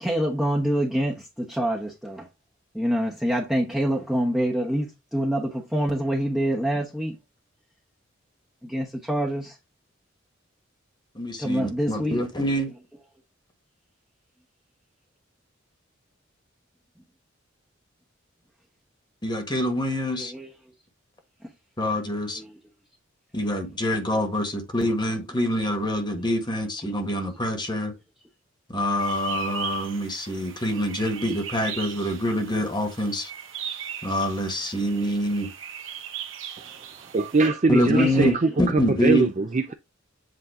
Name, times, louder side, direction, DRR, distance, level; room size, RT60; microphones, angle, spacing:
voice 1, 0.0-2.3 2.7-7.2 8.6-9.6 11.4-12.2 20.2-20.5 22.4-22.5 37.7-38.1, equal, ahead, 0.9 m, -26 dB
voice 2, 11.1-12.7 19.2-20.3 21.8-22.4 23.3-27.9 28.7-33.3 34.0-35.5 37.7-39.3, equal, 20° left, 1.4 m, -25 dB
sound 1, 29.0-37.5, right 9 dB, 70° right, 1.2 m, -38 dB
voice 3, 37.1-38.3 38.7-39.7, right 3 dB, 35° right, 0.5 m, -22 dB
7.9 x 2.7 x 4.7 m
head